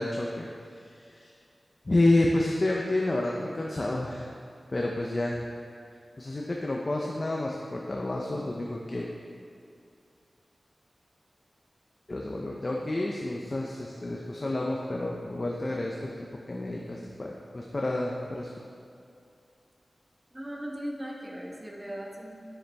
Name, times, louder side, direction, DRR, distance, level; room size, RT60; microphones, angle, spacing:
voice 1, 0.0-1.3 1.8-4.3 4.7-5.4 6.2-9.1 12.1-18.5, left 2 dB, 40° left, -2 dB, 0.7 m, -29 dB
voice 2, 20.3-22.3, equal, 15° right, -1 dB, 1.2 m, -38 dB
9.4 x 7.2 x 3.5 m, 2.5 s
wide cardioid pair, 80°, 0 cm